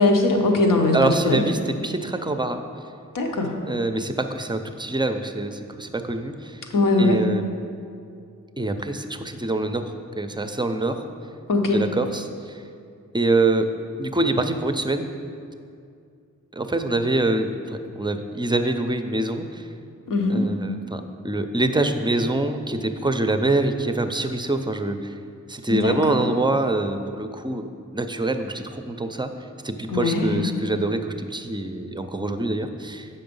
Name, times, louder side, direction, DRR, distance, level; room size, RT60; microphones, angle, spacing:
voice 1, 0.0-1.0 1.2-1.5 3.1-3.5 6.7-7.2 11.5-11.8 20.1-20.5 25.7-26.2 29.9-30.5, left 2 dB, 80° left, 2 dB, 1.0 m, -20 dB
voice 2, 0.9-2.6 3.7-6.6 7.0-7.4 8.6-11.0 11.7-12.6 13.1-13.7 14.0-15.1 16.5-19.7 20.3-25.1 25.5-29.3 29.6-33.1, right 2 dB, 15° right, 7 dB, 0.5 m, -25 dB
7.8 x 5.6 x 5.4 m, 2.4 s
wide cardioid pair, 90°, 32 cm